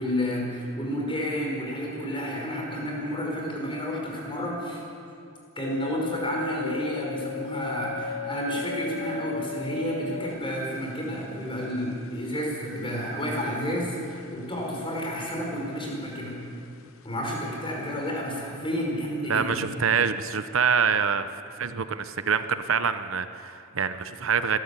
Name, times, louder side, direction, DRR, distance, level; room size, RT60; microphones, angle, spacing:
voice 1, 0.0-4.8 5.5-16.4 17.0-19.7, equal, 25° left, -1 dB, 5.0 m, -30 dB
sound 1, 5.6-15.0 15.3-16.2 16.5-17.5 17.8-17.9, left 5 dB, 80° left, 0.7 m, -37 dB
voice 2, 19.3-21.3 21.6-24.6, right 6 dB, 75° right, 11 dB, 0.9 m, -25 dB
25.0 x 13.0 x 8.4 m, 2.5 s
head